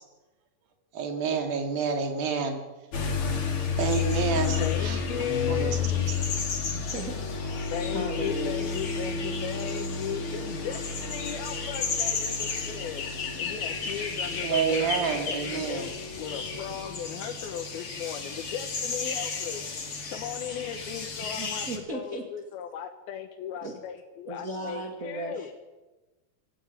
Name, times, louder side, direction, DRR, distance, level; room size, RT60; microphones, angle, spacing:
voice 1, 0.9-2.6 3.8-5.0 5.5-6.1 14.4-15.9, right 6 dB, 75° right, 4 dB, 4.1 m, -29 dB
sound 1, 2.9-21.8, left 5 dB, 40° left, 2.9 m, -31 dB
voice 2, 4.6-5.9 7.7-13.0 13.4-15.9 16.2-19.6 20.1-25.5, left 9 dB, 90° left, 4 dB, 3.1 m, -36 dB
voice 3, 6.7-7.2 7.6-8.7 21.2-22.2 23.6-23.8 24.3-25.5, right 2 dB, 25° right, 0 dB, 2.1 m, -37 dB
25.5 x 13.5 x 8.9 m, 1.1 s
omnidirectional pair, 4.2 m